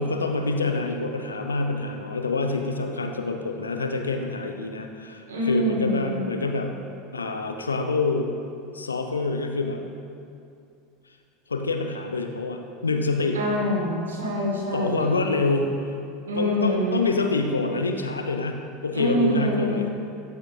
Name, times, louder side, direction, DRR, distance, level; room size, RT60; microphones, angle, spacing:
voice 1, 0.0-6.7 7.1-8.3 8.7-9.8 11.5-13.4 14.7-15.9 16.3-18.6 18.8-19.9, left 3 dB, 80° left, 4 dB, 0.7 m, -26 dB
voice 2, 5.3-6.2 13.3-15.2 16.3-17.1 18.9-19.8, equal, 75° right, -4 dB, 2.3 m, -25 dB
14.5 x 10.5 x 2.7 m, 2.4 s
figure-of-eight pair, 75°, 0 cm